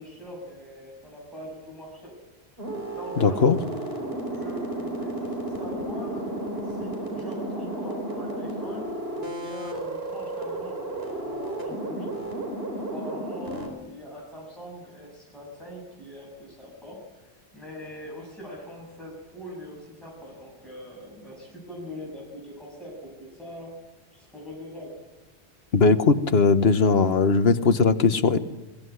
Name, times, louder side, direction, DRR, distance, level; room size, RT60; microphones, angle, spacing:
voice 1, 0.0-2.1 2.9-3.4 4.2-6.2 6.7-12.1 12.8-17.0 17.5-22.9 23.2-23.7 24.1-25.0, equal, ahead, -4 dB, 7.3 m, -42 dB
sound 1, 2.6-13.7, right 1 dB, 65° right, 4.8 m, -33 dB
voice 2, 3.2-3.6 25.7-28.4, left 4 dB, 65° left, 10 dB, 1.4 m, -19 dB
22.5 x 17.5 x 9.7 m, 1.1 s
omnidirectional pair, 1.1 m